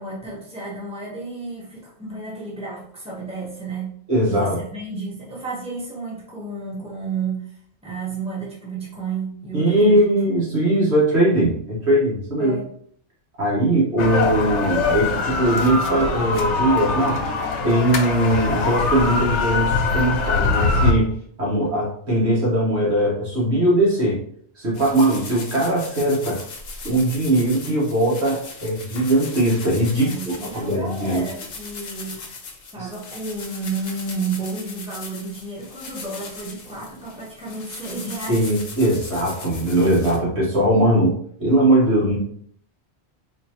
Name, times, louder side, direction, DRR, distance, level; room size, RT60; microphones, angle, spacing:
voice 1, 0.0-4.0 4.3-10.0 10.4-10.5 12.4-12.7 21.5-21.8 30.0-32.2 32.7-38.4, right 4 dB, 5° right, -5 dB, 1.0 m, -32 dB
voice 2, 4.1-4.6 9.5-12.6 13.4-17.2 17.6-21.1 21.4-24.2 24.6-26.4 26.8-31.3 32.8-32.9 38.3-42.2, right 1 dB, 70° right, -5 dB, 1.7 m, -20 dB
sound 1, 14.0-20.9, left 4 dB, 90° left, 1.0 m, -22 dB
sound 2, 24.7-40.2, left 4 dB, 65° left, 1.0 m, -38 dB
4.2 x 2.6 x 2.9 m, 0.62 s
omnidirectional pair, 1.2 m